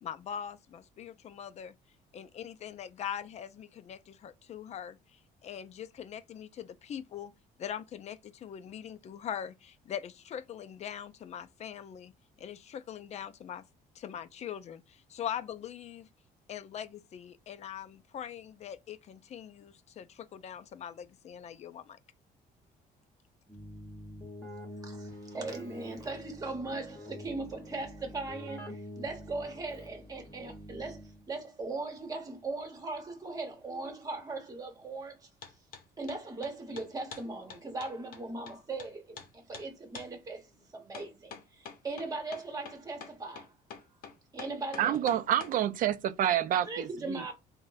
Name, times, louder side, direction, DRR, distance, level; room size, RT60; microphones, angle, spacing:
voice 1, 0.0-1.8 2.1-7.3 7.6-12.1 12.4-13.6 14.0-16.1 16.5-22.0, left 9 dB, 40° left, 0.4 m, -42 dB
Keyboard (musical), 23.5-31.4, equal, 15° left, 1.4 m, -46 dB
voice 2, 24.7-35.3 36.0-43.5 44.3-45.0 46.7-47.3, right 3 dB, 20° right, 1.1 m, -39 dB
sound 1, 35.4-35.8 36.1-38.9 39.2-39.3 39.5-39.7 39.9-40.1 40.9-45.5, left 6 dB, 60° left, 0.8 m, -45 dB
voice 3, 44.8-47.2, right 11 dB, 55° right, 0.4 m, -28 dB
3.6 x 2.1 x 2.5 m
cardioid pair, 110°, 17 cm